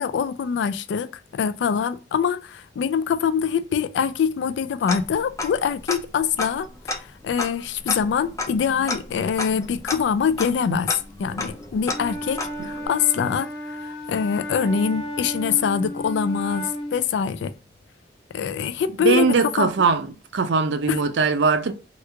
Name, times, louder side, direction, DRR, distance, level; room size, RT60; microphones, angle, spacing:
voice 1, 0.0-6.7 7.2-13.5 13.8-17.5 18.3-19.3 19.6-19.7 20.9-21.1, left 7 dB, 85° left, 0.3 m, -24 dB
Tick-tock, 4.9-5.6 5.9-6.0 6.4-12.9, left 3 dB, 20° left, 0.4 m, -32 dB
Wind instrument woodwind instrument, 11.8-17.0, equal, 65° left, 1.1 m, -33 dB
voice 2, 19.0-20.1 20.3-21.7, right 4 dB, 85° right, 0.5 m, -20 dB
3.0 x 2.3 x 3.3 m
head